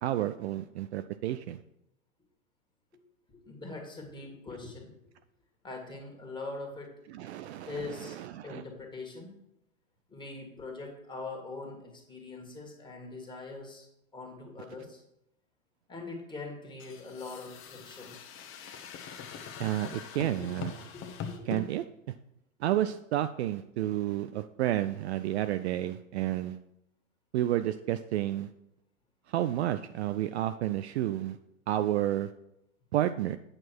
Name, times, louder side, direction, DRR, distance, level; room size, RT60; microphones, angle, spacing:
voice 1, 0.0-1.6 7.1-8.6 19.6-20.7 21.5-21.8 22.6-26.6 27.3-28.5 29.3-31.4 31.7-32.3 32.9-33.4, right 13 dB, 50° right, 11 dB, 0.5 m, -31 dB
voice 2, 3.3-4.9 5.6-6.9 7.7-8.2 8.4-9.3 10.1-13.9 14.1-15.0 15.9-18.2 20.4-20.6 20.9-21.4 21.6-21.7, left 3 dB, 10° left, 1 dB, 2.1 m, -42 dB
sound 1, 16.8-21.6, left 7 dB, 30° left, 1.2 m, -42 dB
8.8 x 6.1 x 4.6 m, 0.81 s
hypercardioid pair, 105°, 42 cm